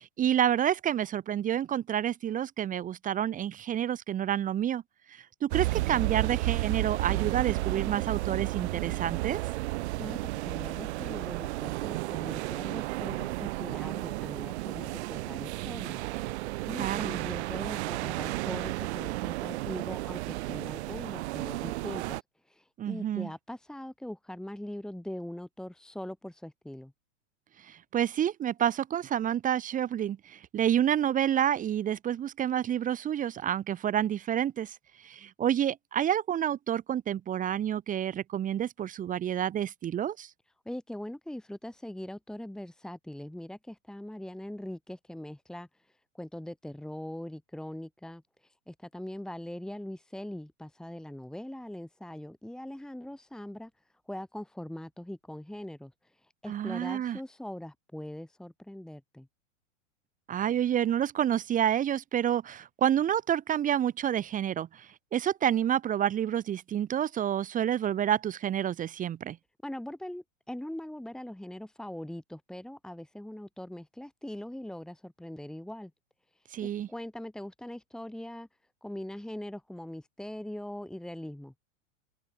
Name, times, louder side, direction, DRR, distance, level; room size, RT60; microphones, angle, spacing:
voice 1, 0.0-4.8 5.1-9.4 16.8-17.2 22.8-23.3 27.6-40.3 56.5-57.2 60.3-69.4 76.5-76.9, right 10 dB, 20° right, 1.3 m, -29 dB
sound 1, 5.5-22.2, right 20 dB, 55° right, 1.8 m, -33 dB
voice 2, 10.0-16.0 16.7-26.9 40.6-53.7 54.1-59.3 69.6-75.9 76.6-78.5 78.8-81.5, left 1 dB, ahead, 2.8 m, -41 dB
open air
supercardioid pair, 140°, 38 cm